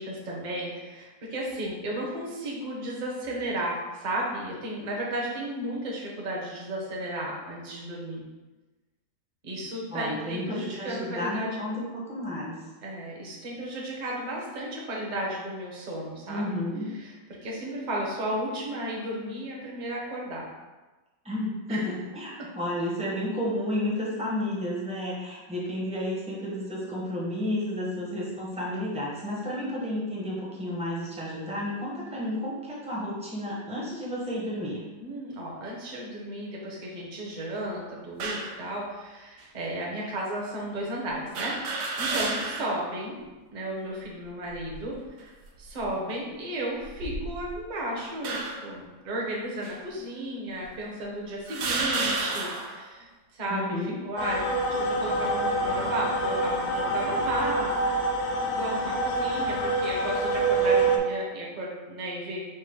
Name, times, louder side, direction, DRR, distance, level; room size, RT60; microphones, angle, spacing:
voice 1, 0.0-8.2 9.4-11.6 12.8-16.4 16.9-17.1 17.4-20.4 21.7-21.8 35.0-41.6 42.0-43.2 43.5-45.3 45.6-57.8 58.5-62.4, right 1 dB, 35° right, -3 dB, 0.7 m, -34 dB
voice 2, 9.9-12.6 16.3-16.9 21.2-34.8 53.5-54.0, left 1 dB, 5° right, -6 dB, 0.6 m, -32 dB
sound 1, 38.2-38.6 39.4-39.5 41.3-42.8 43.2-43.3 44.5-44.9 45.6-45.9 46.8-47.6 48.2-48.7 49.6-49.8 50.6-50.7 51.5-52.8, right 3 dB, 80° right, 1.3 m, -31 dB
sound 2, 54.2-61.0, right 2 dB, 70° left, 1.1 m, -26 dB
4.7 x 2.1 x 4.5 m, 1.2 s
omnidirectional pair, 1.8 m